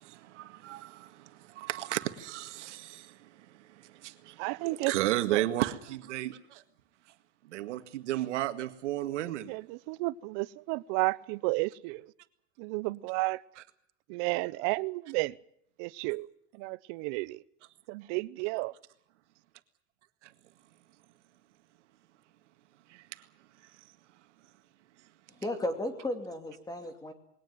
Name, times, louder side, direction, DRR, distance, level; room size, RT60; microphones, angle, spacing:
voice 1, 0.0-6.6 7.4-9.5 13.6-13.7 20.2-20.3 22.9-23.3, right 14 dB, 90° right, 2.0 m, -34 dB
voice 2, 4.4-4.9 5.3-5.4 9.5-9.6 9.9-12.0 12.6-13.4 14.1-15.3 15.8-16.3 16.6-17.4 17.9-18.7, right 23 dB, 50° right, 0.8 m, -32 dB
voice 3, 25.4-27.1, left 1 dB, 10° left, 2.8 m, -34 dB
21.5 x 18.0 x 9.4 m
supercardioid pair, 140°, 35 cm